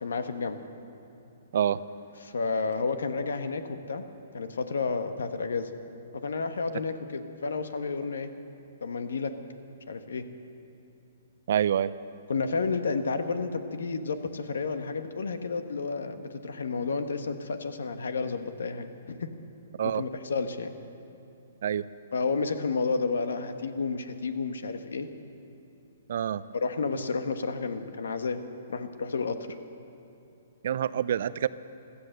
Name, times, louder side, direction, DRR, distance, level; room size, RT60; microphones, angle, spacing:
voice 1, 0.0-0.6 2.2-4.1 4.3-5.7 6.1-8.3 8.8-9.3 9.9-10.3 12.3-19.3 19.8-20.7 22.1-25.1 26.5-28.4 28.7-29.4, left 4 dB, 80° left, 9 dB, 1.2 m, -31 dB
voice 2, 11.5-11.9 19.8-20.0 21.6-21.8 26.1-26.4 30.6-31.5, right 9 dB, 60° right, 17 dB, 0.5 m, -26 dB
16.5 x 13.0 x 6.6 m, 3.0 s
hypercardioid pair, 135°, 0 cm